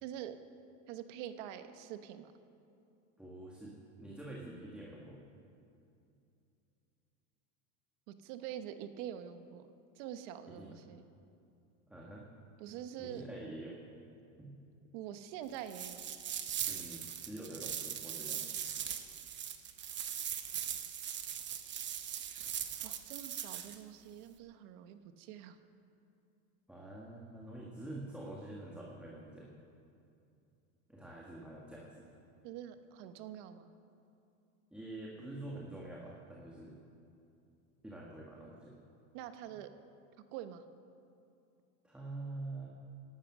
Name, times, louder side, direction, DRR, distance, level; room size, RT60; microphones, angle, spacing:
voice 1, 0.0-0.3 0.9-2.3 8.1-9.7 10.0-11.1 12.6-13.2 14.9-16.1 22.8-25.6 32.4-33.7 39.1-39.7 40.3-40.6, right 10 dB, 70° right, 9 dB, 1.2 m, -45 dB
voice 2, 3.2-5.2 10.5-10.8 11.9-12.3 13.0-13.8 14.4-14.6 16.6-18.4 26.7-29.5 30.9-32.0 34.7-36.8 37.8-38.7 39.5-39.6 41.8-42.7, right 2 dB, 5° right, -4 dB, 1.7 m, -46 dB
sound 1, 15.7-23.8, right 9 dB, 30° right, 1.0 m, -40 dB
18.0 x 12.0 x 6.2 m, 2.6 s
supercardioid pair, 140°, 38 cm